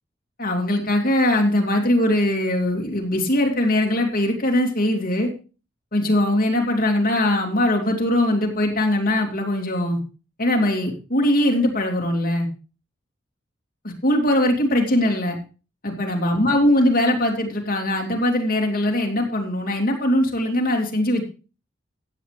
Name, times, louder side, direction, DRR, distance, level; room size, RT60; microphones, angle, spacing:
voice 1, 0.4-5.3 5.9-10.0 10.4-12.5 13.8-15.4 15.8-21.2, left 1 dB, 50° left, 1 dB, 2.7 m, -21 dB
15.0 x 8.3 x 3.3 m, 0.34 s
head